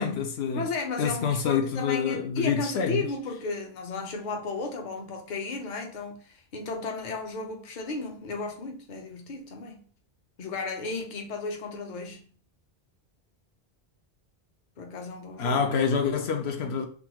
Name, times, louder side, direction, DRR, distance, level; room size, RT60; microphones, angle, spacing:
voice 1, 0.0-0.6 1.0-3.1 15.4-16.9, left 6 dB, 80° left, 0.8 m, -27 dB
voice 2, 0.5-9.8 10.4-12.2 14.8-15.6, left 4 dB, 50° left, 0.8 m, -34 dB
3.7 x 2.3 x 2.9 m
omnidirectional pair, 1.1 m